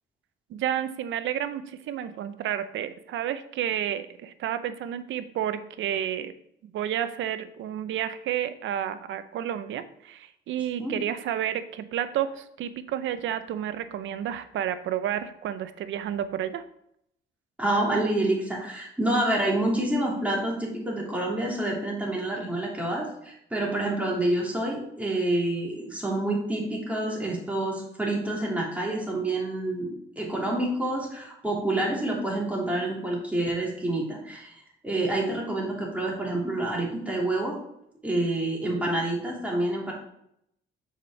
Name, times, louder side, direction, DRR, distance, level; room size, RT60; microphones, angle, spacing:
voice 1, 0.5-6.3 6.7-16.6, right 10 dB, 75° right, 12 dB, 0.6 m, -31 dB
voice 2, 17.6-37.6 38.0-39.9, right 1 dB, 5° right, -3 dB, 3.0 m, -28 dB
6.6 x 5.1 x 4.4 m, 0.75 s
cardioid pair, 90°, 20 cm